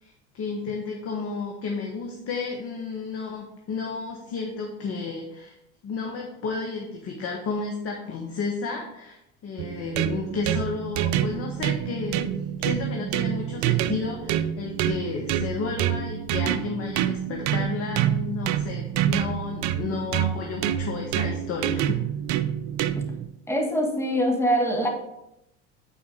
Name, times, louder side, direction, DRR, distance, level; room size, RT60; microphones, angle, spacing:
voice 1, 0.0-5.5 5.8-22.0, left 4 dB, 40° left, 0 dB, 1.5 m, -32 dB
sound 1, 9.6-23.3, right 10 dB, 55° right, 0.6 m, -27 dB
voice 2, 23.5-24.9, equal, 5° left, 2 dB, 1.8 m, -23 dB
9.0 x 4.6 x 5.0 m, 0.84 s
hypercardioid pair, 85°, 36 cm